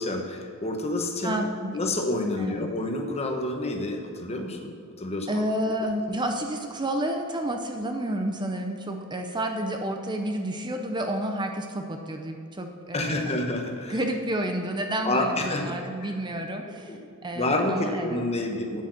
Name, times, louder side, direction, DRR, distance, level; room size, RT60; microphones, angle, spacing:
voice 1, 0.0-1.4 1.7-4.7 5.0-5.7 12.9-13.9 15.0-15.7 16.9-17.0 17.3-18.8, left 2 dB, 30° left, 3 dB, 1.1 m, -28 dB
voice 2, 1.2-1.8 2.4-2.7 5.3-13.4 13.9-18.2, right 1 dB, 20° right, 4 dB, 0.6 m, -30 dB
8.4 x 8.0 x 6.4 m, 2.4 s
head